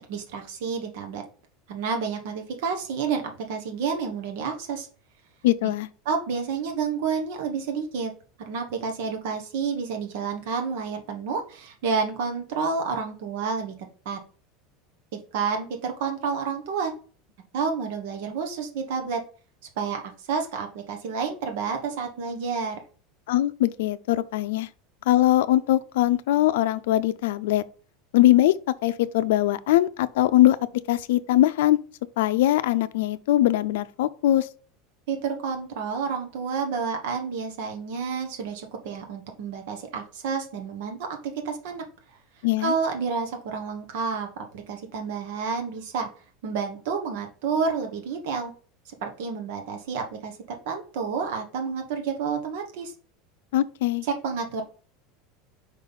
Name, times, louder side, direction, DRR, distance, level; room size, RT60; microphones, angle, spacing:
voice 1, 0.1-1.2 1.7-3.2 3.5-4.9 6.0-8.1 8.4-13.8 14.0-14.2 15.3-16.9 17.5-19.2 19.8-20.0 20.3-22.8 35.1-41.0 41.2-41.8 42.6-44.3 44.5-46.1 46.4-48.5 48.8-50.4 50.6-52.9 54.2-54.6, right 5 dB, 65° right, 1.2 m, -29 dB
voice 2, 5.4-5.9 23.3-24.7 25.1-27.6 28.1-28.5 28.8-30.6 30.9-31.8 32.2-34.5 42.4-42.7 53.5-54.0, left 14 dB, 85° left, 0.5 m, -21 dB
5.2 x 4.1 x 5.4 m
supercardioid pair, 165°, 0 cm